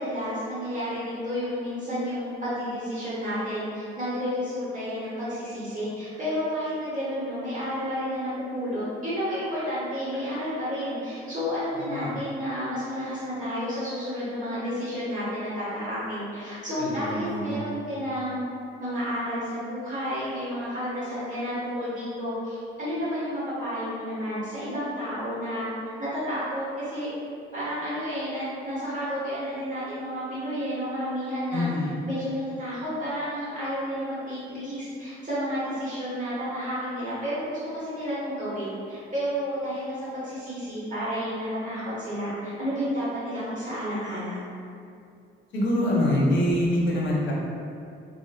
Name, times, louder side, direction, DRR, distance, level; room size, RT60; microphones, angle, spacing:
voice 1, 0.0-18.4 18.8-25.7 26.0-27.1 27.5-31.7 32.0-44.4, equal, 40° right, -10 dB, 1.4 m, -31 dB
voice 2, 11.7-12.1 16.8-17.6 31.5-31.9 45.5-47.3, left 1 dB, 65° left, -4 dB, 0.8 m, -25 dB
3.5 x 2.6 x 2.4 m, 2.5 s
cardioid pair, 90°, 20 cm